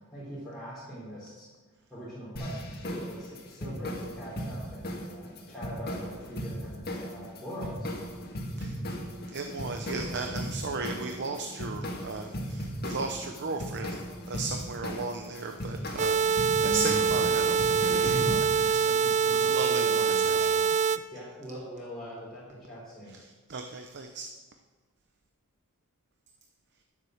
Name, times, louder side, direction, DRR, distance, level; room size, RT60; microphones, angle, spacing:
voice 1, 0.1-1.5 1.9-7.9 18.6-20.7 21.1-23.2, equal, ahead, -10 dB, 3.7 m, -42 dB
sound 1, 2.4-18.4, equal, 45° left, 1.9 m, -37 dB
voice 2, 8.6-14.0 14.3-20.8 23.1-24.3, right 3 dB, 50° right, 5 dB, 0.8 m, -36 dB
sound 2, 16.0-21.0, right 6 dB, 30° right, 0.4 m, -25 dB
sound 3, 16.6-19.3, left 1 dB, 30° left, 2.5 m, -41 dB
12.5 x 7.5 x 6.4 m, 1.4 s
head